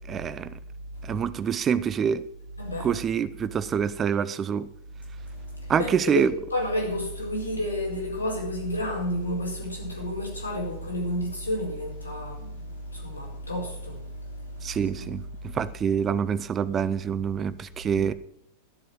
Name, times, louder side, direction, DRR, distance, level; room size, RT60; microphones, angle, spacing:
voice 1, 0.1-0.6 1.0-2.2 2.8-4.7 5.7-6.3 14.6-18.1, right 7 dB, 25° right, 0.5 m, -26 dB
voice 2, 2.6-2.9 5.2-6.2 6.5-15.1 17.9-18.0, left 1 dB, 80° left, 4.6 m, -31 dB
12.0 x 7.6 x 7.5 m
figure-of-eight pair, 90°, 0 cm